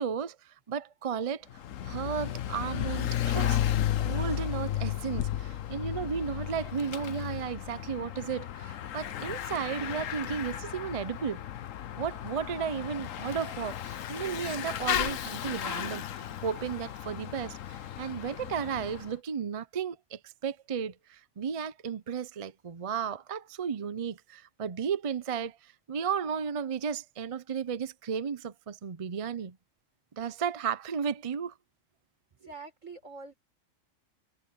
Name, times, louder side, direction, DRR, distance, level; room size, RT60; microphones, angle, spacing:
voice 1, 0.0-1.5 1.8-11.4 12.0-29.6 30.2-31.5, right 7 dB, 40° right, 0.5 m, -34 dB
Bicycle / Mechanisms, 1.5-19.1, left 11 dB, 85° left, 1.2 m, -34 dB
voice 2, 32.4-33.3, right 4 dB, 75° right, 6.0 m, -45 dB
omnidirectional pair, 1.3 m